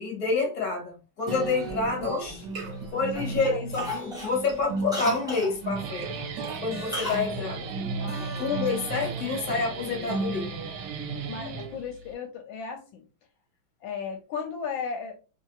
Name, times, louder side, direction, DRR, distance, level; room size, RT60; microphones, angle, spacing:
voice 1, 0.0-2.5 2.9-6.1 6.6-7.7 8.4-10.5, left 4 dB, 30° left, 0 dB, 1.1 m, -28 dB
sound 1, 1.3-10.9, right 3 dB, 65° right, 1.4 m, -35 dB
Cough, 1.5-2.8 3.1-3.4 3.7-5.6 6.9-7.3 7.6-7.7, left 2 dB, 5° right, 0.5 m, -35 dB
voice 2, 2.9-3.6 8.0-8.7 11.1-13.1 13.8-15.1, left 6 dB, 75° left, 4 dB, 1.3 m, -36 dB
Guitar, 5.5-12.1, right 5 dB, 85° right, 1.4 m, -38 dB
3.1 x 2.8 x 2.3 m, 0.32 s
omnidirectional pair, 2.2 m